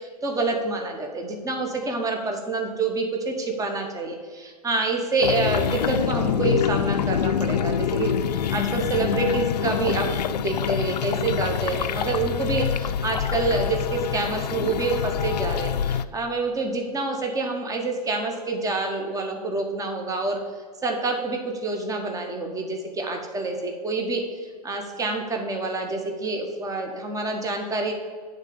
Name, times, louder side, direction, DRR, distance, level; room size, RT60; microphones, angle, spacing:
voice 1, 0.0-20.4 20.8-27.9, right 3 dB, 15° right, 3 dB, 1.2 m, -27 dB
sound 1, 5.2-16.0, left 8 dB, 90° left, 0.4 m, -26 dB
9.4 x 3.9 x 6.9 m, 1.5 s
hypercardioid pair, 105°, 20 cm